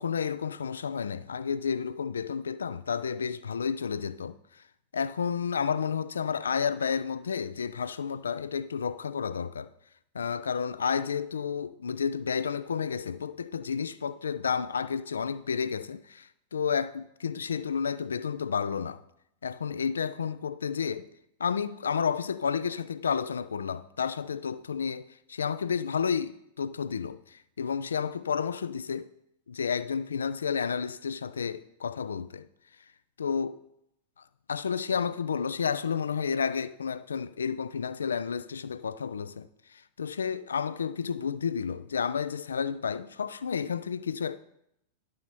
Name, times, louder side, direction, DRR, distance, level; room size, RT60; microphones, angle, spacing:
voice 1, 0.0-4.4 4.9-9.7 10.1-19.0 19.4-21.1 21.4-29.1 29.5-32.5 33.2-33.6 34.5-39.5 39.7-44.4, left 6 dB, 70° left, 0.4 m, -31 dB
11.5 x 6.3 x 4.3 m
figure-of-eight pair, 90°, 0 cm